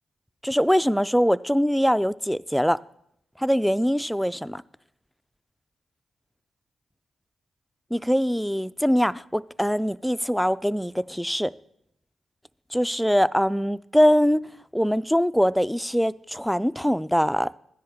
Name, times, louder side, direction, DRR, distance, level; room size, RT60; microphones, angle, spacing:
voice 1, 0.4-2.8 3.4-4.6 7.9-11.5 12.7-14.4 14.7-17.5, equal, ahead, 15 dB, 0.4 m, -22 dB
13.5 x 10.0 x 3.6 m, 0.73 s
supercardioid pair, 45°, 0 cm